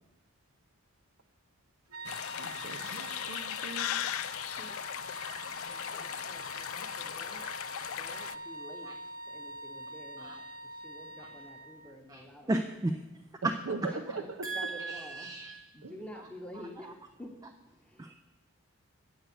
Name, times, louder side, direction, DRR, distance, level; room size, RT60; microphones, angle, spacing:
sound 1, 1.9-11.9, right 1 dB, 85° right, 1.0 m, -44 dB
sound 2, 2.0-8.3, left 11 dB, 70° left, 0.3 m, -38 dB
voice 1, 2.4-4.0 13.4-13.8 14.1-14.5 15.8-15.9, right 3 dB, 65° right, 7 dB, 0.7 m, -41 dB
voice 2, 5.6-7.4 7.8-8.9 9.3-10.4 10.6-12.5 13.7-13.8 14.2-14.3 14.5-15.3 15.7-17.4 17.8-18.1, equal, 5° left, 2 dB, 1.0 m, -49 dB
voice 3, 12.1-13.0 13.4-13.5 13.8-14.2 14.4-15.7 16.8-16.9 18.0-18.1, right 2 dB, 15° right, 5 dB, 0.3 m, -34 dB
8.1 x 8.0 x 6.1 m, 1.1 s
head